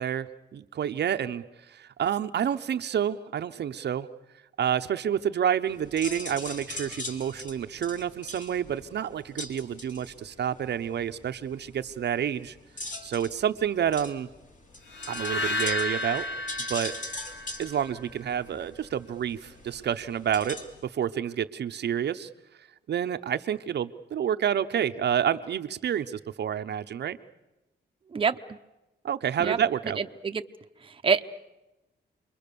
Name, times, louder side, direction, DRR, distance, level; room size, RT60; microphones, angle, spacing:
voice 1, 0.0-4.1 4.6-12.5 13.0-14.3 15.1-16.2 16.7-17.0 17.6-22.3 22.9-27.2 29.0-30.0, right 9 dB, 65° right, 9 dB, 0.8 m, -29 dB
sound 1, 5.7-20.8, left 2 dB, 45° left, 2.9 m, -42 dB
sound 2, 14.9-18.1, left 1 dB, 90° left, 1.6 m, -32 dB
voice 2, 30.0-30.4 30.8-31.2, right 5 dB, 30° right, 6 dB, 0.8 m, -26 dB
28.5 x 22.0 x 6.9 m, 0.98 s
cardioid pair, 105°, 18 cm